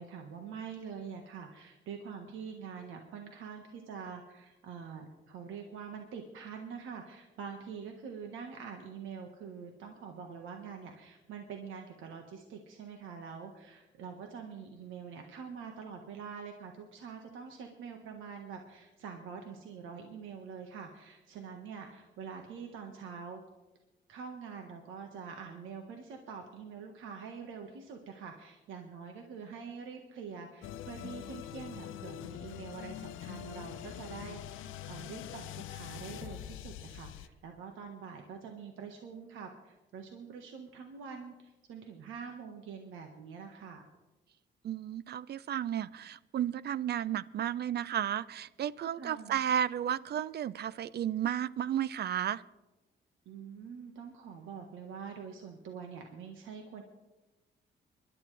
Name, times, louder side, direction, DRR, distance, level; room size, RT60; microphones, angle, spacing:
voice 1, 0.0-23.4 24.1-43.9 48.9-49.4 53.2-56.8, right 6 dB, 85° right, 3 dB, 1.4 m, -45 dB
sound 1, 30.6-37.3, left 11 dB, 90° left, 0.6 m, -44 dB
voice 2, 44.6-52.4, right 10 dB, 55° right, 19 dB, 0.6 m, -33 dB
24.5 x 11.5 x 3.3 m, 1.1 s
cardioid pair, 90°, 20 cm